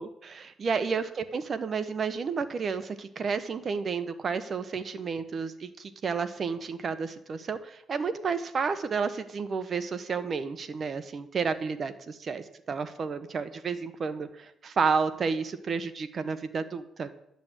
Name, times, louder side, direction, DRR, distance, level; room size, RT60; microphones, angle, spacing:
voice 1, 0.0-17.1, right 5 dB, 45° right, 11 dB, 1.2 m, -31 dB
11.5 x 7.0 x 8.2 m, 0.80 s
cardioid pair, 90°, 0 cm